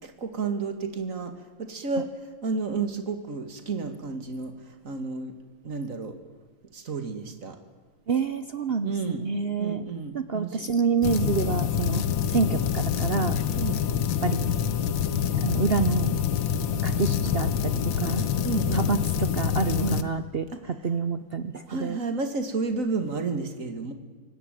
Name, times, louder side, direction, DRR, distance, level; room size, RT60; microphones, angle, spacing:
voice 1, 0.0-1.3 1.6-5.3 5.6-6.2 6.7-7.6 8.8-9.2 9.6-10.7 13.6-13.8 18.4-18.9 19.8-20.0 20.5-20.6 21.7-23.9, right 4 dB, 40° right, 7 dB, 2.5 m, -31 dB
voice 2, 8.1-8.9 9.2-9.8 10.1-12.0 12.3-13.4 14.2-14.5 15.3-16.2 16.8-18.3 18.7-22.0, right 5 dB, 70° right, 11 dB, 0.5 m, -27 dB
sound 1, 11.0-20.0, left 8 dB, 75° left, 1.8 m, -26 dB
25.0 x 18.0 x 9.2 m, 1.4 s
omnidirectional pair, 2.2 m